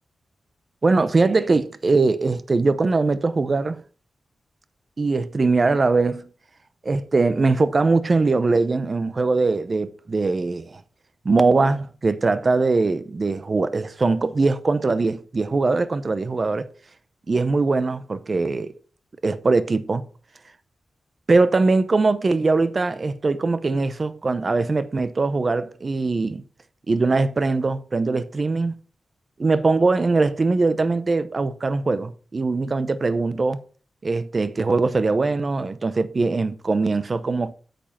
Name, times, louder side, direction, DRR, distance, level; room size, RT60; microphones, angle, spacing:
voice 1, 0.8-3.8 5.0-6.3 6.8-10.8 11.2-16.7 17.3-18.7 19.2-20.1 21.3-26.4 26.9-28.8 29.4-33.6 34.0-37.5, right 3 dB, 35° right, 0.7 m, -21 dB
8.8 x 5.4 x 5.7 m
wide cardioid pair, 145°, 0 cm